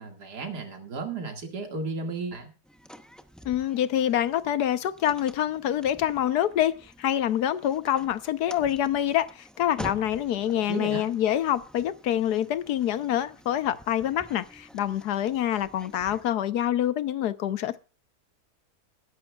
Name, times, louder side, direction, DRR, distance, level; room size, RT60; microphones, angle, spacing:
voice 1, 0.0-2.5 10.5-11.0, right 3 dB, 90° right, 2.6 m, -34 dB
sound 1, 2.6-16.3, equal, ahead, 0.4 m, -48 dB
voice 2, 3.4-17.8, left 11 dB, 80° left, 1.4 m, -26 dB
21.5 x 11.0 x 2.3 m
omnidirectional pair, 1.7 m